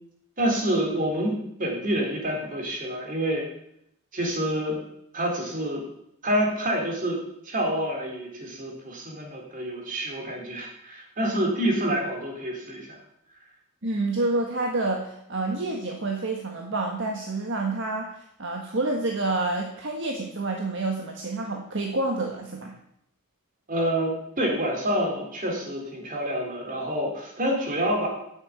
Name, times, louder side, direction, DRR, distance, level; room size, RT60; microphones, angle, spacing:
voice 1, 0.4-3.5 4.1-4.8 5.1-5.9 6.2-13.0 23.7-28.1, right 1 dB, 40° right, 1 dB, 3.6 m, -27 dB
voice 2, 13.8-22.8, right 2 dB, 55° right, 1 dB, 1.4 m, -28 dB
10.5 x 8.1 x 8.7 m, 0.77 s
head